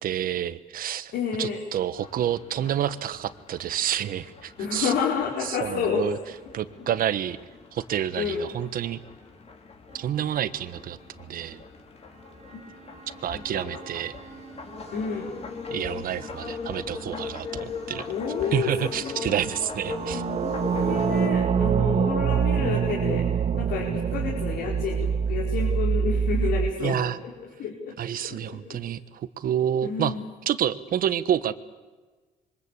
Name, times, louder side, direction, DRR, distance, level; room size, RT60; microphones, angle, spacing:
voice 1, 0.0-1.1 1.4-4.9 5.4-6.2 6.5-7.4 7.7-9.0 9.9-11.6 13.2-14.1 15.7-18.0 18.5-20.2 26.8-27.2 28.0-30.1 30.5-31.5, right 10 dB, 60° right, 13 dB, 1.4 m, -28 dB
voice 2, 1.1-1.6 4.6-6.0 8.2-8.5 12.5-12.6 13.3-13.7 14.9-15.4 18.1-19.2 20.0-23.2 23.5-27.3 27.6-27.9 28.3-28.8 29.8-30.2, left 6 dB, 75° left, -2 dB, 4.8 m, -30 dB
sound 1, 2.0-21.3, left 4 dB, 35° left, 4.1 m, -40 dB
sound 2, 13.3-14.6 19.7-26.7, right 7 dB, 40° right, 1.1 m, -25 dB
27.0 x 24.0 x 8.4 m, 1.3 s
cardioid pair, 110°, 17 cm